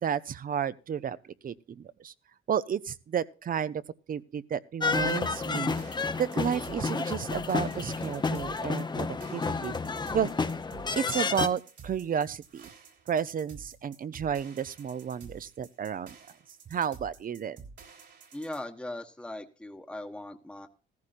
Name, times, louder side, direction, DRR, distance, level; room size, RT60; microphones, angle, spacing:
voice 1, 0.0-1.2 1.4-2.1 2.5-3.8 4.1-5.8 6.2-9.8 10.1-10.3 11.0-12.7 13.1-16.1 16.7-17.6, right 8 dB, 45° right, 0.7 m, -32 dB
sound 1, 4.8-11.5, left 4 dB, 20° left, 0.7 m, -31 dB
sound 2, 4.9-18.6, right 5 dB, 65° right, 3.6 m, -51 dB
voice 2, 18.3-20.7, left 1 dB, 5° left, 1.1 m, -39 dB
16.0 x 14.5 x 2.5 m
cardioid pair, 90°, 20 cm